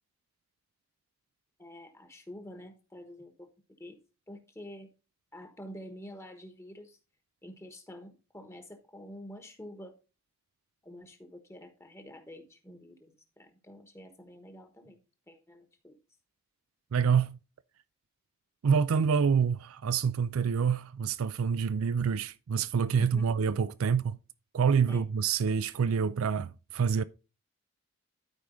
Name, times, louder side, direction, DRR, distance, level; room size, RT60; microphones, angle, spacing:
voice 1, 1.6-3.5 3.8-4.0 4.3-4.9 5.3-7.0 7.4-10.0 10.8-15.0 15.3-16.0 23.0-23.3 24.9-25.0, equal, 15° left, 1.2 m, -48 dB
voice 2, 16.9-17.4 18.6-24.2 24.5-27.0, right 6 dB, 80° right, 0.4 m, -27 dB
12.0 x 4.8 x 3.9 m
head